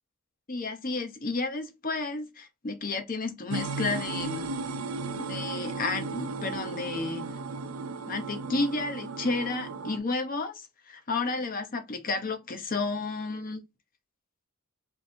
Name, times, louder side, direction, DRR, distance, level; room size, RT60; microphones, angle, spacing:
voice 1, 0.5-4.5 5.1-7.4 8.1-13.6, left 3 dB, 40° left, 0.9 m, -32 dB
sound 1, 3.5-10.0, right 3 dB, 85° right, 0.6 m, -35 dB
3.4 x 3.2 x 4.3 m
head